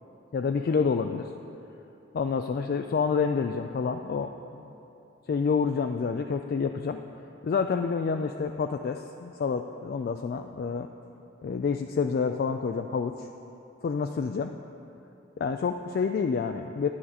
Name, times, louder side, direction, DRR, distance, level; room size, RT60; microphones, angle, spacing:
voice 1, 0.3-1.3 2.1-4.7 5.3-7.0 7.4-10.9 11.4-13.3 13.8-14.6 15.4-16.9, left 5 dB, 55° left, 5 dB, 0.3 m, -28 dB
10.5 x 10.0 x 4.2 m, 2.9 s
head